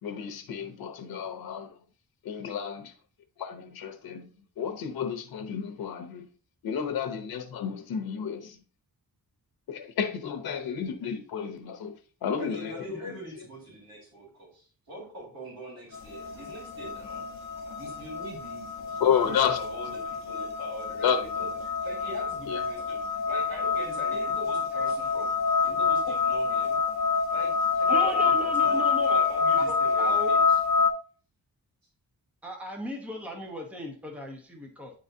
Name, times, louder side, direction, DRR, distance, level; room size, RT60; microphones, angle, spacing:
voice 1, 0.0-1.8 2.2-2.9 3.4-4.3 4.6-6.3 6.6-8.6 9.7-12.0 12.2-13.5 19.0-19.6 21.0-21.2 22.5-22.6, left 7 dB, 80° left, 0.8 m, -31 dB
voice 2, 12.4-17.2 17.8-21.5 21.8-25.3 25.6-26.8 27.3-30.6, equal, 70° right, 3.1 m, -43 dB
sound 1, 15.9-30.9, left 5 dB, 50° left, 0.9 m, -27 dB
voice 3, 27.9-29.2 29.7-30.3 32.4-34.9, equal, 5° right, 0.9 m, -36 dB
9.5 x 3.9 x 2.7 m
wide cardioid pair, 160°, 37 cm